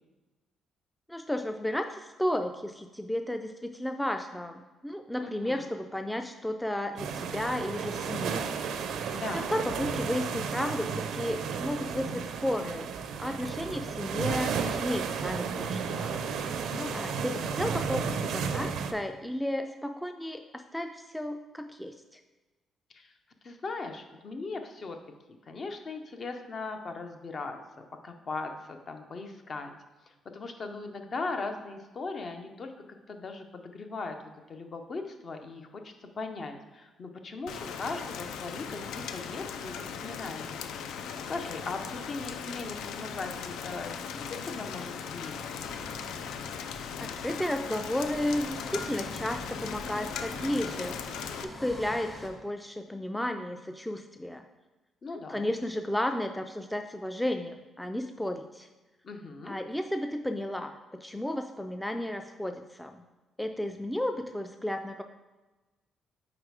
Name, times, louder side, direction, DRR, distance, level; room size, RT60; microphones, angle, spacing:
voice 1, 1.1-8.5 9.3-12.9 13.2-16.1 16.9-22.2 47.2-51.0 51.4-54.4 55.1-58.7 59.5-63.0 63.4-65.0, left 1 dB, 5° left, 5 dB, 0.3 m, -33 dB
voice 2, 5.2-5.7 9.1-9.5 16.7-17.2 22.9-23.1 23.4-25.0 25.5-27.6 28.0-29.7 30.3-32.7 33.1-34.2 34.5-40.6 41.3-45.4 55.0-55.5 59.0-59.6, left 3 dB, 45° left, 5 dB, 0.7 m, -39 dB
sound 1, 7.0-18.9, right 6 dB, 80° right, 0.4 m, -33 dB
Rain, 37.5-51.4, left 7 dB, 85° left, 0.4 m, -38 dB
sound 2, 45.6-52.3, left 1 dB, 25° left, 1.4 m, -46 dB
4.9 x 4.1 x 4.8 m, 1.2 s
cardioid pair, 90°, 0 cm